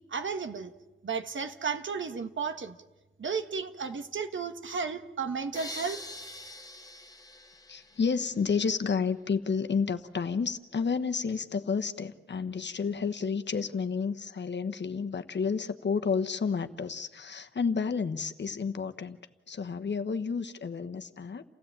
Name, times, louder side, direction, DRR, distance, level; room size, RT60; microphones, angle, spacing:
voice 1, 0.1-0.7 1.0-2.8 3.2-6.0, right 5 dB, 70° right, 1.5 m, -33 dB
sound 1, 5.5-8.5, left 1 dB, 15° left, 1.5 m, -44 dB
voice 2, 7.7-19.2 19.5-21.4, left 5 dB, 60° left, 1.2 m, -31 dB
29.5 x 16.0 x 8.9 m
wide cardioid pair, 115°, 20 cm